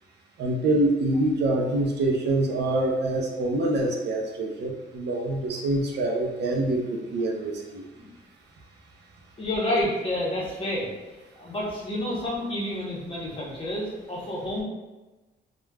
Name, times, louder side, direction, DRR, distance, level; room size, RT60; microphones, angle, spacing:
voice 1, 0.4-7.8, right 2 dB, 60° right, 0 dB, 0.5 m, -25 dB
voice 2, 9.4-10.9 11.4-14.6, left 1 dB, 25° left, -5 dB, 1.0 m, -29 dB
3.2 x 2.3 x 2.2 m, 1.1 s
cardioid pair, 90°, 20 cm